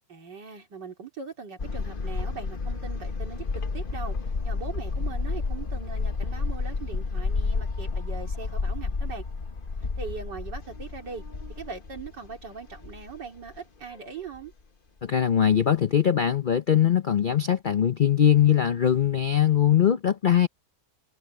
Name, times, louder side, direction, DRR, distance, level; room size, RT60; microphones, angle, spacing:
voice 1, 0.1-4.2 4.4-9.2 10.0-11.2 11.6-14.5, right 5 dB, 80° right, 3.8 m, -40 dB
sound 1, 1.6-13.6 13.9-14.0 14.3-14.4, left 4 dB, 35° left, 1.2 m, -31 dB
voice 2, 15.0-20.5, left 9 dB, 90° left, 0.4 m, -21 dB
omnidirectional pair, 1.8 m